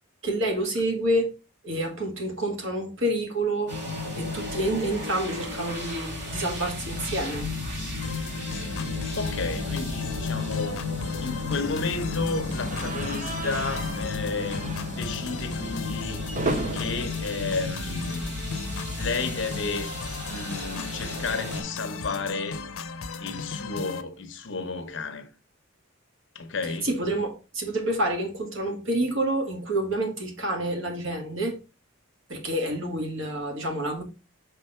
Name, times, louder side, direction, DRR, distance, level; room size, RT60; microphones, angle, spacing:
voice 1, 0.2-1.3 1.6-3.7 4.2-7.5 26.8-31.6 32.3-34.0, right 1 dB, 70° right, 1.8 m, -28 dB
sound 1, 3.7-21.6, left 3 dB, 55° right, 2.4 m, -33 dB
sound 2, 8.0-24.0, left 4 dB, 90° left, 0.6 m, -37 dB
voice 2, 9.2-10.9 11.2-16.2 16.7-18.4 19.0-19.9 20.3-22.6 23.2-25.3 26.3-26.9, left 4 dB, 60° left, 0.9 m, -32 dB
sound 3, 12.5-18.5 18.8-19.0 19.3-19.4 20.6-23.0, right 2 dB, 35° right, 0.8 m, -36 dB
5.9 x 3.7 x 4.4 m
head